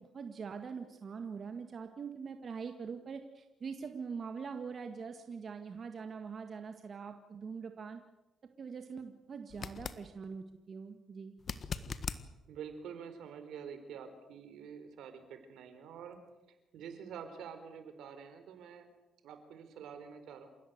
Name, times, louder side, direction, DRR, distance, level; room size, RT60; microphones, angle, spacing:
voice 1, 0.0-8.0 8.6-11.3, right 5 dB, 45° right, 6 dB, 1.8 m, -43 dB
sound 1, 9.5-10.0 11.4-12.2 15.2-15.3, left 6 dB, 45° left, 1.5 m, -40 dB
voice 2, 12.5-16.2 16.5-18.9 19.2-20.5, right 7 dB, 80° right, 8 dB, 4.2 m, -47 dB
28.5 x 16.0 x 8.1 m, 1.0 s
cardioid pair, 90°, 0 cm